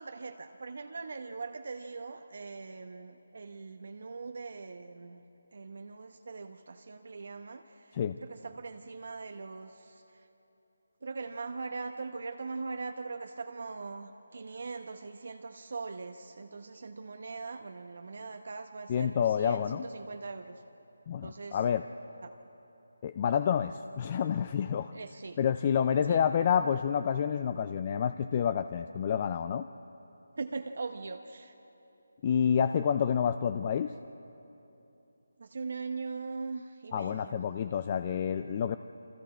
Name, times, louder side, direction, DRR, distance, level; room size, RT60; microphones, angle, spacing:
voice 1, 0.0-5.2 5.5-10.3 11.0-20.6 21.2-21.6 22.2-22.3 24.9-25.4 26.0-26.2 30.4-31.5 35.4-37.4, right 4 dB, 55° right, 6 dB, 0.9 m, -41 dB
voice 2, 18.9-19.9 21.1-21.8 23.0-24.9 25.4-29.7 32.2-33.9 36.9-38.8, left 8 dB, 25° left, 11 dB, 0.4 m, -28 dB
29.5 x 24.0 x 4.4 m, 3.0 s
figure-of-eight pair, 170°, 0 cm